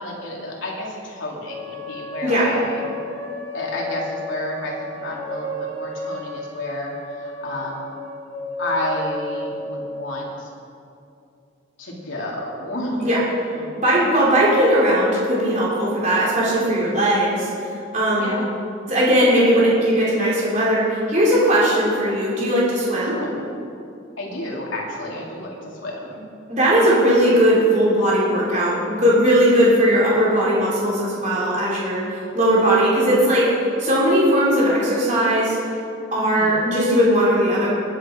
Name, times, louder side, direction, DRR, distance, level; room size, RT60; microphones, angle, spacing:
voice 1, 0.0-2.9 3.5-7.9 8.6-10.5 11.8-13.1 13.5-13.6 16.6-16.9 18.1-18.5 23.1-23.3 24.2-26.2 36.1-36.6, left 1 dB, 80° left, -3 dB, 3.0 m, -30 dB
sound 1, 1.4-10.4, left 1 dB, 85° right, 3.0 m, -33 dB
voice 2, 13.7-17.5 17.9-18.4 18.9-23.2 26.5-33.5 33.8-35.6 36.1-37.7, equal, 40° right, -6 dB, 3.4 m, -18 dB
21.5 x 8.5 x 4.5 m, 2.6 s
head